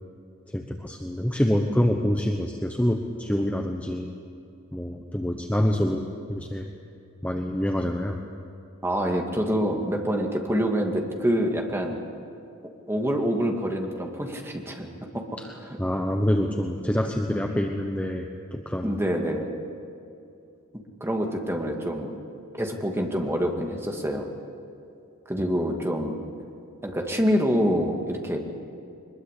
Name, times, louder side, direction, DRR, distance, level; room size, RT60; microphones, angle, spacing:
voice 1, 0.5-4.1 4.7-6.0 6.3-6.7 7.2-8.2 15.4-15.5 15.8-19.0, equal, 5° left, 3 dB, 1.1 m, -26 dB
voice 2, 8.8-12.0 12.9-14.9 15.1-15.2 15.6-15.8 18.8-19.5 21.0-22.1 22.6-24.3 25.3-26.2 26.8-28.4, equal, 10° right, 2 dB, 2.3 m, -26 dB
23.0 x 21.5 x 8.4 m, 2.6 s
head